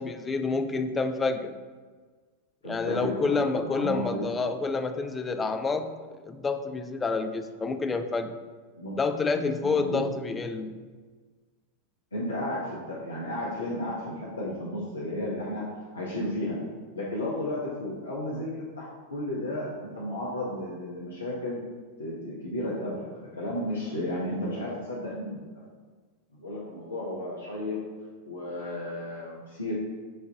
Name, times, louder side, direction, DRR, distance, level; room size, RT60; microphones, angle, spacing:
voice 1, 0.0-1.6 2.6-8.3 9.0-10.8, left 4 dB, 15° left, 7 dB, 0.3 m, -28 dB
voice 2, 2.6-4.4 8.8-9.0 9.6-10.1 12.1-15.6 15.9-16.6 16.9-21.6 22.0-25.5 26.3-27.8 28.2-29.7, left 1 dB, 75° left, -5 dB, 0.7 m, -33 dB
7.3 x 2.5 x 2.7 m, 1.4 s
figure-of-eight pair, 90°, 0 cm